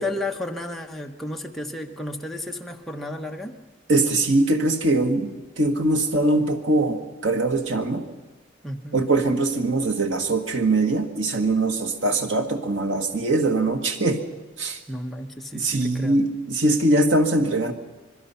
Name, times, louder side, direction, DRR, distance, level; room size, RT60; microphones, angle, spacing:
voice 1, 0.0-3.6 8.6-9.1 14.9-16.2, left 1 dB, ahead, 1 dB, 1.1 m, -32 dB
voice 2, 3.9-8.0 8.9-14.2 14.6-14.8 15.5-17.7, right 2 dB, 75° right, 5 dB, 1.8 m, -22 dB
26.0 x 21.5 x 5.8 m, 1.2 s
head